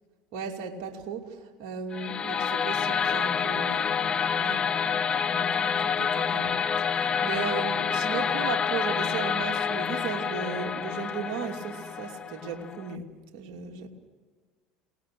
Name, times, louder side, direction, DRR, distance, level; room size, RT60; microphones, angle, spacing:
voice 1, 0.3-4.1 4.4-13.9, right 6 dB, 60° right, 2 dB, 2.9 m, -36 dB
sound 1, 1.9-12.9, left 7 dB, 30° left, 1.0 m, -28 dB
28.0 x 19.0 x 6.3 m, 1.4 s
hypercardioid pair, 70°, 3 cm